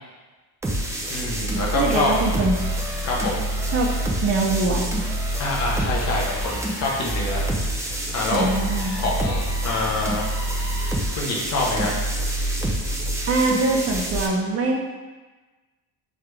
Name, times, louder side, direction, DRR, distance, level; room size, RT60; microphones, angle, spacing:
sound 1, 0.6-14.3, right 1 dB, 5° right, 0.4 m, -26 dB
voice 1, 1.1-2.1 3.0-3.4 5.4-7.4 8.1-8.5 9.0-10.3 11.1-11.9, left 2 dB, 35° left, -3 dB, 1.0 m, -26 dB
voice 2, 1.7-2.6 3.7-3.9 4.2-4.9 8.3-9.0 13.3-14.8, right 3 dB, 35° right, 0 dB, 0.7 m, -23 dB
3.9 x 3.5 x 3.3 m, 1.2 s
cardioid pair, 135°, 43 cm